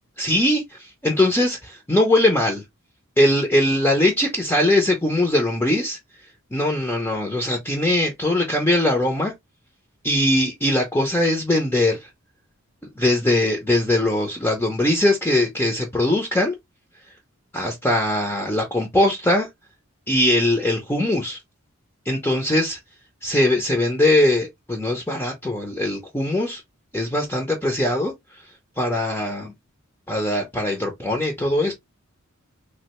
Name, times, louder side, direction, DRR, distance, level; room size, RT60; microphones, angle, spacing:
voice 1, 0.2-2.6 3.2-6.0 6.5-9.3 10.0-12.1 13.0-16.5 17.5-19.5 20.1-21.4 22.1-22.8 23.2-26.6 26.9-28.1 28.8-29.5 30.1-31.7, left 1 dB, 10° left, 0.5 m, -21 dB
3.1 x 2.4 x 2.9 m
head